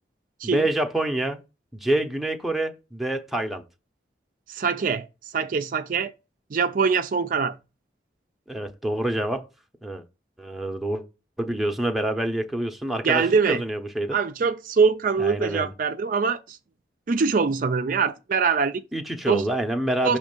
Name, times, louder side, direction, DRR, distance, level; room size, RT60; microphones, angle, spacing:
voice 1, 0.4-1.4 1.7-3.6 8.5-9.5 9.8-10.0 10.4-11.0 11.4-14.2 15.2-15.7 18.9-20.2, right 1 dB, ahead, 0.7 m, -27 dB
voice 2, 4.5-5.1 5.3-6.1 6.5-7.6 13.0-13.6 14.1-16.6 17.1-18.8 19.2-19.5 20.0-20.2, right 5 dB, 45° right, 0.4 m, -23 dB
6.3 x 3.1 x 5.2 m
head